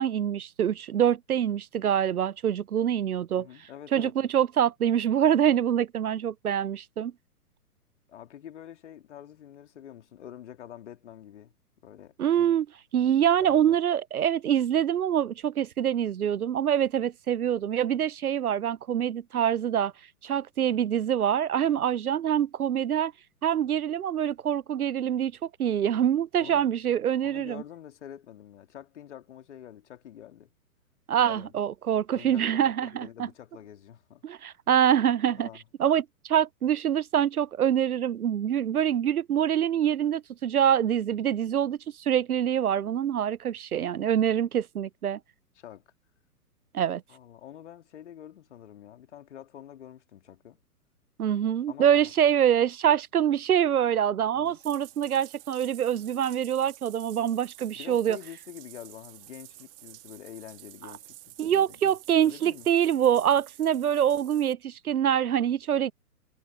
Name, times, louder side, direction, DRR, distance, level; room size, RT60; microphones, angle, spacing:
voice 1, 0.0-3.5 3.9-7.1 12.2-12.7 12.9-19.9 20.2-23.1 23.4-27.6 31.1-33.1 34.2-35.5 35.8-45.2 46.7-47.0 51.2-58.2 61.4-65.9, right 9 dB, 70° right, 0.6 m, -25 dB
voice 2, 3.3-4.3 8.1-11.5 11.8-12.5 13.4-13.8 26.4-26.7 27.2-30.5 31.2-31.5 32.1-34.2 35.4-35.6 45.6-45.8 47.1-50.6 51.7-52.1 54.3-54.6 57.7-62.7, left 10 dB, 50° left, 2.9 m, -47 dB
Bathtub (filling or washing), 54.4-64.5, right 16 dB, 35° right, 2.4 m, -50 dB
figure-of-eight pair, 120°, 47 cm